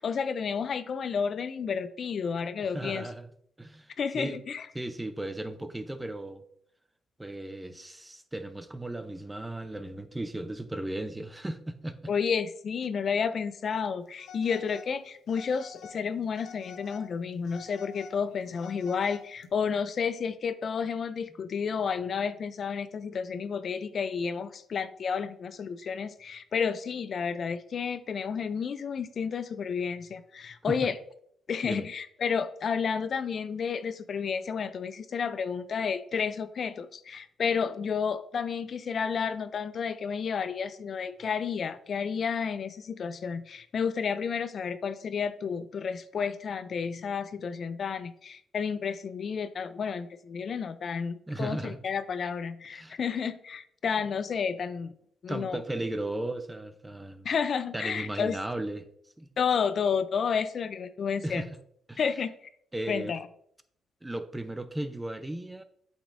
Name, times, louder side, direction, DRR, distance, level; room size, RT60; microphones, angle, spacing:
voice 1, 0.0-3.0 4.0-4.7 12.1-31.0 31.5-54.9 55.2-55.6 57.2-58.4 59.4-61.5 62.0-62.4 62.9-63.3, left 6 dB, 50° left, 12 dB, 0.4 m, -31 dB
voice 2, 2.7-3.3 3.6-4.4 4.7-6.4 7.2-12.0 30.7-30.8 31.6-31.9 51.3-51.8 52.7-53.0 55.3-57.3 57.7-58.9 59.2-59.3 61.2-61.5 61.9-62.0 62.7-63.1 64.0-65.6, right 1 dB, 10° right, 10 dB, 0.6 m, -36 dB
Telephone, 14.2-14.9 15.3-16.0 16.4-17.1 17.4-19.5, left 6 dB, 80° left, 0.9 m, -48 dB
8.5 x 5.3 x 2.5 m, 0.67 s
cardioid pair, 90°, 0 cm